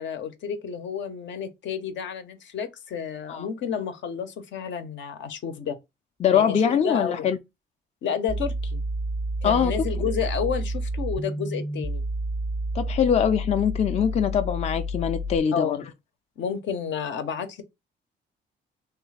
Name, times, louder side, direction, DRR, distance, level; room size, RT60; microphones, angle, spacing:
voice 1, 0.0-5.8 6.3-7.3 8.0-8.8 9.4-12.0 15.5-15.8 16.4-17.6, left 7 dB, 70° left, 0.7 m, -31 dB
voice 2, 6.2-7.4 9.4-9.7 12.7-15.8, left 8 dB, 35° left, 0.4 m, -23 dB
sound 1, 8.3-15.4, equal, 15° left, 0.8 m, -30 dB
3.2 x 2.4 x 3.2 m
cardioid pair, 90°, 20 cm